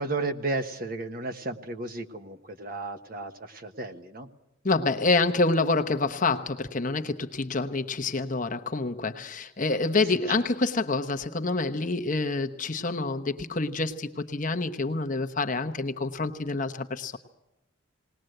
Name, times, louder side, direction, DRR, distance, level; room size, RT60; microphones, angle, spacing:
voice 1, 0.0-4.3 10.0-10.1, right 2 dB, 45° right, 1.3 m, -33 dB
voice 2, 4.6-17.2, left 3 dB, 40° left, 1.0 m, -27 dB
20.0 x 19.5 x 7.9 m
head